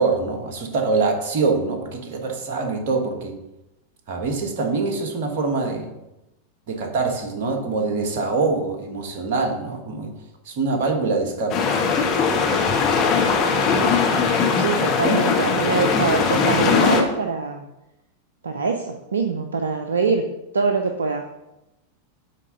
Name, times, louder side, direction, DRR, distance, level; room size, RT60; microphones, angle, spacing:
voice 1, 0.0-3.4 4.1-5.9 6.7-10.1 10.4-12.0 15.1-15.2, right 4 dB, 50° right, 4 dB, 1.4 m, -24 dB
sound 1, 11.5-17.0, left 5 dB, 35° left, 1.3 m, -20 dB
voice 2, 14.6-17.7 18.4-20.2 20.5-21.3, right 4 dB, 70° right, 5 dB, 0.5 m, -24 dB
9.1 x 3.7 x 5.4 m, 0.94 s
figure-of-eight pair, 90°, 0 cm